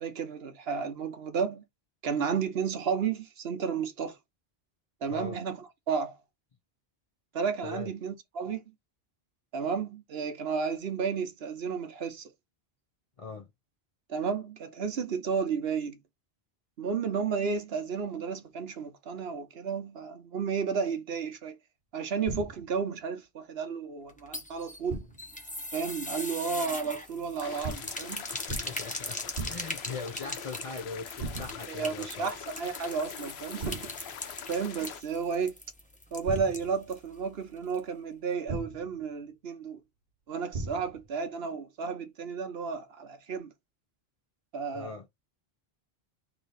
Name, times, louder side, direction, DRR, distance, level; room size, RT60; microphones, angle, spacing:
voice 1, 0.0-1.6 2.0-4.2 5.0-6.2 7.3-8.6 9.5-12.3 14.1-16.0 16.8-21.6 21.9-25.0 25.7-28.3 31.7-33.8 34.5-35.5 36.1-39.8 40.3-43.5 44.5-44.9, right 6 dB, 75° right, 1.1 m, -32 dB
voice 2, 5.1-5.4 7.6-7.9 13.2-13.5 28.3-32.3 44.7-45.1, left 4 dB, 40° left, 0.5 m, -40 dB
sound 1, 22.3-22.8 24.9-25.4 27.6-28.1 28.5-28.9 29.4-29.9 31.2-31.8 33.6-34.1 36.3-36.9 38.5-39.0 40.5-41.1, right 3 dB, 50° right, 1.0 m, -38 dB
sound 2, 24.1-37.1 37.3-37.4 37.7-37.8, left 1 dB, 10° left, 0.9 m, -40 dB
sound 3, 27.4-35.0, left 8 dB, 90° left, 0.8 m, -44 dB
3.4 x 3.1 x 3.9 m
omnidirectional pair, 1.0 m